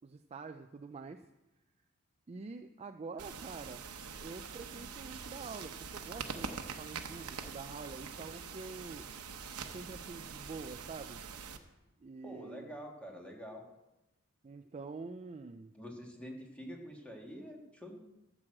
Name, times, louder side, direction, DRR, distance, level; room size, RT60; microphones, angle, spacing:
voice 1, 0.0-1.2 2.3-3.9 4.2-9.0 9.7-11.2 12.0-12.7 14.4-15.7, right 4 dB, 30° right, 8 dB, 0.4 m, -46 dB
sound 1, 3.2-11.6, right 5 dB, 85° right, 0.9 m, -44 dB
voice 2, 12.2-13.7 15.7-18.0, equal, 5° left, 1 dB, 1.7 m, -46 dB
12.5 x 6.2 x 7.7 m, 0.99 s
head